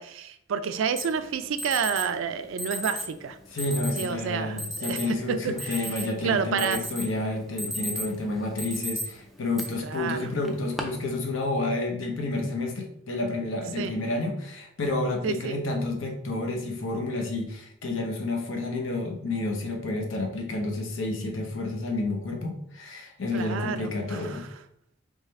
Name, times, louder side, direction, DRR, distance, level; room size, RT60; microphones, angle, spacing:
voice 1, 0.0-3.4 4.0-5.0 5.3-5.9 6.2-6.8 9.8-10.3 13.8-13.9 15.2-15.6 23.3-24.5, right 6 dB, 75° right, 11 dB, 0.3 m, -29 dB
Alarm, 1.0-1.1 1.6-2.0 2.6-3.1 3.6-4.1 4.6-5.0 5.4-6.2 6.6-7.1 7.4-8.1 8.6-9.0 9.6-9.7 10.4-10.8, equal, ahead, 0.3 m, -33 dB
voice 2, 3.5-24.5, left 2 dB, 75° left, 2 dB, 0.8 m, -30 dB
3.6 x 3.2 x 3.1 m, 0.72 s
head